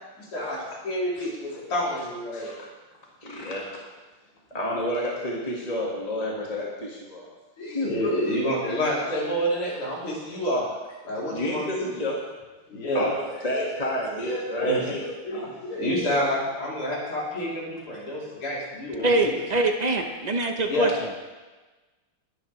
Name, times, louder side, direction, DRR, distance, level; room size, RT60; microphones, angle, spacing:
voice 1, 0.2-2.6 5.4-5.7 7.6-10.7 11.0-11.9 12.7-13.1 13.5-13.8 14.2-19.4 20.7-20.9, equal, 80° left, -6 dB, 4.4 m, -28 dB
voice 2, 3.2-3.9 4.5-7.3 7.7-7.9 11.3-12.2 12.9-15.0 19.0-19.3, left 1 dB, 20° left, -3 dB, 1.7 m, -30 dB
voice 3, 19.0-20.9, right 2 dB, 70° right, 3 dB, 0.4 m, -23 dB
21.0 x 11.0 x 3.3 m, 1.2 s
omnidirectional pair, 2.4 m